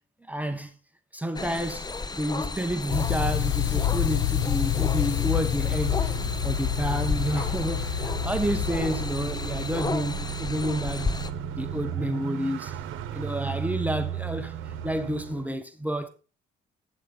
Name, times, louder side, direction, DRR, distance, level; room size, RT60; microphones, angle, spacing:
voice 1, 0.3-0.7 1.1-1.9 2.2-6.0 6.4-11.1 11.5-12.7 13.1-14.6 14.8-16.1, equal, 10° right, 1.1 m, -29 dB
sound 1, 1.3-11.3, left 3 dB, 20° left, 0.7 m, -34 dB
sound 2, 2.9-9.9, left 14 dB, 70° left, 0.5 m, -28 dB
sound 3, 5.7-15.5, right 8 dB, 90° right, 0.9 m, -35 dB
8.6 x 7.4 x 3.9 m
cardioid pair, 90°, 20 cm